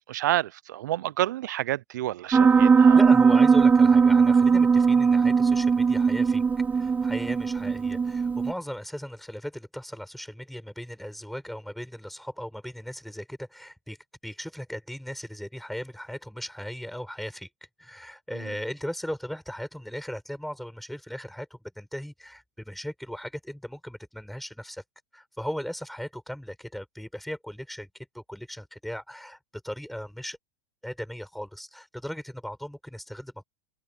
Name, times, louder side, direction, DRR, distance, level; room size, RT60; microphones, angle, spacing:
voice 1, 0.1-3.0 18.3-18.5, right 14 dB, 70° right, 0.8 m, -29 dB
Piano, 2.3-8.5, right 5 dB, 15° right, 0.3 m, -19 dB
voice 2, 2.9-6.4 6.7-14.0 14.2-17.5 17.8-24.8 25.1-27.9 28.1-30.4 30.8-33.4, equal, ahead, 6.8 m, -37 dB
hypercardioid pair, 90°, 10 cm